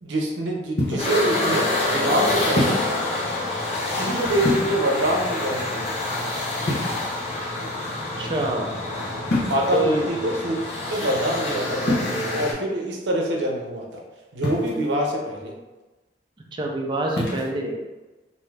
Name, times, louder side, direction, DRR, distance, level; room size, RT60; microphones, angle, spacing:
voice 1, 0.0-2.8 3.9-6.1 9.5-10.5 10.9-14.0 14.3-15.5, right 1 dB, 85° right, 0 dB, 0.6 m, -25 dB
sound 1, 0.8-1.2 2.6-3.0 4.4-5.0 6.6-7.4 9.3-9.8 11.8-12.1 14.4-14.9 17.1-17.5, left 1 dB, 70° left, 0.7 m, -26 dB
sound 2, 1.0-12.5, left 2 dB, 35° left, 0.9 m, -27 dB
voice 2, 8.2-8.7 9.7-10.1 16.5-17.8, right 1 dB, 25° right, 1 dB, 0.4 m, -25 dB
2.7 x 2.3 x 3.2 m, 1.1 s
head